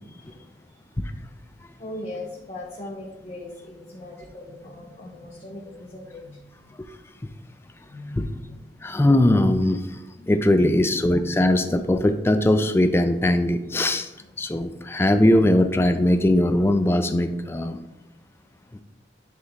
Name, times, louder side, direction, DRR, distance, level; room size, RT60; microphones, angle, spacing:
voice 1, 0.0-0.4 0.8-0.9 1.8-6.4 7.8-9.0 10.2-11.0 14.2-14.3, left 1 dB, 35° left, -4 dB, 0.9 m, -39 dB
voice 2, 8.8-9.9 10.3-14.1 14.4-17.8 18.7-18.8, left 1 dB, 15° left, 8 dB, 0.3 m, -20 dB
9.3 x 3.2 x 3.5 m, 0.93 s
head